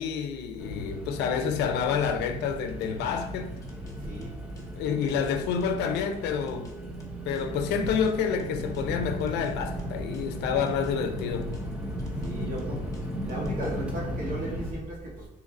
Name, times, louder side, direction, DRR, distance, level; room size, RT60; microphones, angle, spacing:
voice 1, 0.0-3.6 4.8-6.7 7.3-11.6, left 6 dB, 85° left, 0.5 m, -28 dB
sound 1, 0.6-14.7, equal, 5° right, 0.6 m, -36 dB
sound 2, 2.8-7.4 7.9-10.9 11.2-13.9, left 2 dB, 20° left, 0.9 m, -50 dB
voice 2, 4.0-4.3 12.2-12.9 13.2-15.3, right 1 dB, 50° right, 1.4 m, -35 dB
2.8 x 2.5 x 4.1 m
cardioid pair, 110°, 17 cm